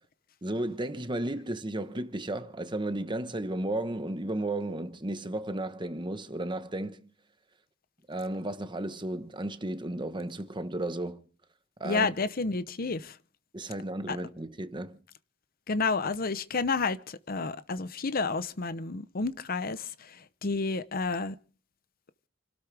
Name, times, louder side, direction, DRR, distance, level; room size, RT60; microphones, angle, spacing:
voice 1, 0.4-7.1 8.1-11.2 11.8-12.1 13.5-15.0, right 1 dB, 25° right, 1.2 m, -34 dB
voice 2, 11.8-13.1 14.1-14.2 15.7-19.9 20.4-21.3, left 4 dB, 50° left, 0.8 m, -30 dB
29.0 x 12.5 x 3.4 m
head